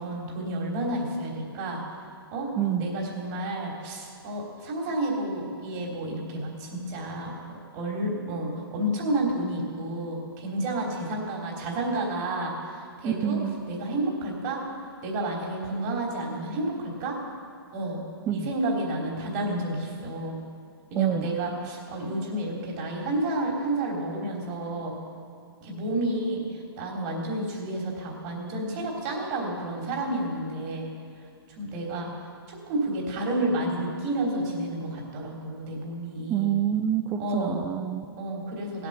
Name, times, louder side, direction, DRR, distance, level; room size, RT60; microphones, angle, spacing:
voice 1, 0.0-1.8 2.3-13.4 13.7-14.6 15.0-17.2 17.7-18.0 18.3-20.4 20.9-25.0 25.6-30.9 31.5-36.5 37.2-37.6 38.2-38.9, right 1 dB, 40° right, -1 dB, 3.6 m, -30 dB
voice 2, 13.0-13.6 18.3-18.5 21.0-21.3 36.3-38.1, right 10 dB, 20° right, 9 dB, 0.5 m, -27 dB
17.0 x 8.4 x 6.7 m, 2.2 s
hypercardioid pair, 130°, 13 cm